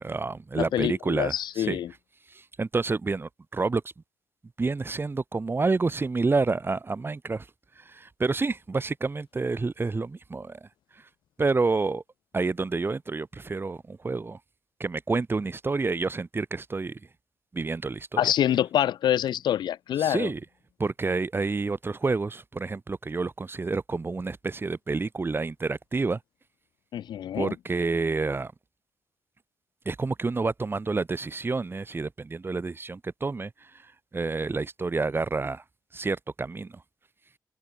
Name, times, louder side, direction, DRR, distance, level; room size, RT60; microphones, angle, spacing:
voice 1, 0.0-1.8 2.3-3.8 4.6-7.5 7.9-10.7 11.4-12.0 12.3-14.4 14.8-17.0 17.5-18.3 20.0-20.4 20.8-26.2 27.3-28.5 29.9-33.5 34.1-35.6 35.9-36.8, right 3 dB, 30° right, 0.5 m, -29 dB
voice 2, 0.6-1.9 18.2-20.3 26.9-27.5, left 11 dB, 85° left, 0.6 m, -26 dB
supercardioid pair, 45°, 7 cm